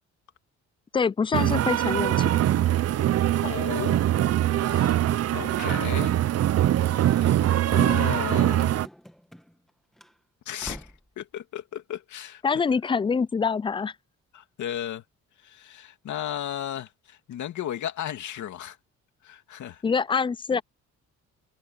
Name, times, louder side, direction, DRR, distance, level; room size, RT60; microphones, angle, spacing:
voice 1, 0.9-2.4 12.4-13.9 19.8-20.6, left 5 dB, 15° left, 0.4 m, -25 dB
sound 1, 1.3-8.9, right 12 dB, 55° right, 0.6 m, -23 dB
voice 2, 3.4-4.0 4.6-5.0 5.3-6.1 6.9-7.3 7.7-8.7 10.5-12.4 14.3-15.0 15.4-18.8 19.2-19.8 20.5-20.6, left 11 dB, 70° left, 2.8 m, -35 dB
Run / Slam, 6.8-9.7 10.0-10.1 10.6-11.1, equal, ahead, 2.1 m, -45 dB
open air
cardioid pair, 90°, 30 cm